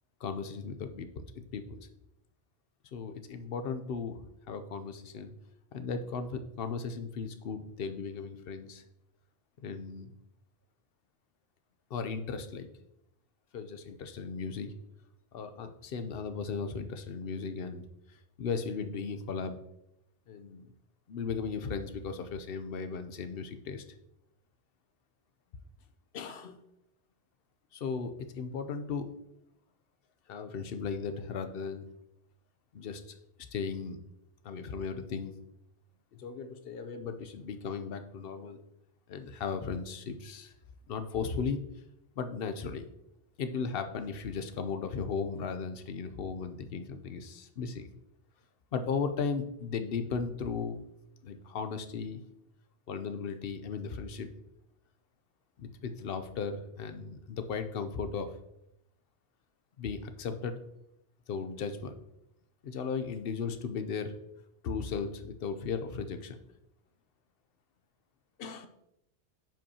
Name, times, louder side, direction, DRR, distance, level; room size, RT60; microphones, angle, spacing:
voice 1, 0.2-1.2 1.5-1.8 2.9-5.3 5.7-8.8 9.6-10.1 11.9-12.7 13.5-14.7 15.3-17.8 18.4-19.6 20.3-20.7 21.1-23.8 26.1-26.6 27.7-29.1 30.3-31.8 32.7-33.1 33.5-34.0 34.4-35.3 36.2-38.6 39.1-40.5 40.9-41.6 42.2-42.8 43.4-47.9 48.7-50.8 51.2-52.2 52.9-54.3 55.6-58.4 59.8-60.6 61.3-62.0 62.6-64.2 64.6-66.4 68.4-68.7, left 5 dB, 60° left, 9 dB, 0.8 m, -36 dB
8.9 x 5.3 x 2.8 m, 0.82 s
omnidirectional pair, 1.2 m